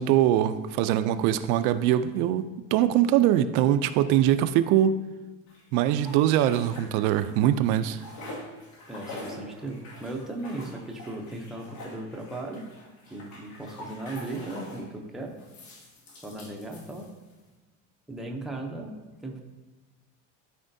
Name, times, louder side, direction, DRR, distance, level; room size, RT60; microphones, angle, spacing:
voice 1, 0.0-2.4 2.7-5.0 5.7-8.0, right 11 dB, 80° right, 11 dB, 0.5 m, -22 dB
sound 1, 5.5-7.4 7.7-14.9 15.4-17.4, left 1 dB, 80° left, 2.0 m, -45 dB
voice 2, 8.9-12.7 13.1-15.3 16.2-17.1 18.1-19.4, right 2 dB, ahead, -1 dB, 0.5 m, -37 dB
12.5 x 4.4 x 2.6 m, 1.2 s
cardioid pair, 165°, 34 cm